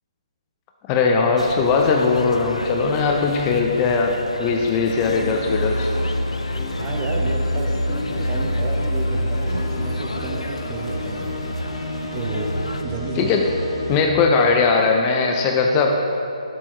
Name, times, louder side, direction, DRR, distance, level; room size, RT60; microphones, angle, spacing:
voice 1, 0.9-5.9 13.2-13.5 13.9-16.0, left 4 dB, 20° left, 2 dB, 0.4 m, -19 dB
sound 1, 1.4-12.8, left 2 dB, 85° left, 0.4 m, -32 dB
sound 2, 5.0-14.0, equal, 50° left, 1.4 m, -26 dB
voice 2, 6.8-11.3 12.1-13.5 13.9-14.2, right 3 dB, 25° right, 1 dB, 0.7 m, -31 dB
7.5 x 4.5 x 4.4 m, 2.8 s
figure-of-eight pair, 140°, 3 cm